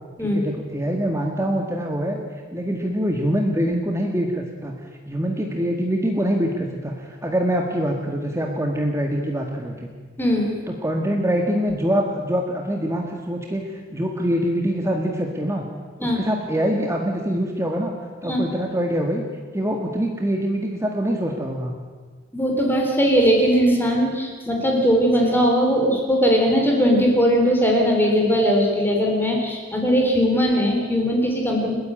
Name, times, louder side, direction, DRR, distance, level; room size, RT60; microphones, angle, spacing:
voice 1, 0.2-2.2 2.5-4.7 5.1-9.9 10.7-15.6 16.0-17.9 18.2-19.2 19.5-21.8, equal, 15° right, 1 dB, 1.8 m, -24 dB
voice 2, 10.2-10.5 16.0-16.2 18.3-18.4 22.3-31.7, equal, 10° left, 0 dB, 3.8 m, -19 dB
29.5 x 10.5 x 8.8 m, 1.5 s
head